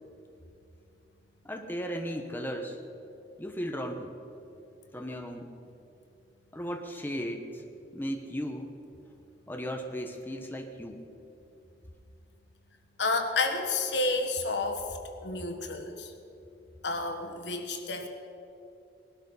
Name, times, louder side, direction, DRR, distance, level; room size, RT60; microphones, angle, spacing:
voice 1, 1.4-2.8 3.4-4.1 4.9-5.5 6.5-7.6 7.9-8.8 9.5-11.0, equal, 10° left, 4 dB, 1.0 m, -36 dB
voice 2, 13.0-16.1 16.8-18.1, left 3 dB, 90° left, 5 dB, 1.6 m, -30 dB
19.5 x 12.0 x 5.5 m, 2.8 s
head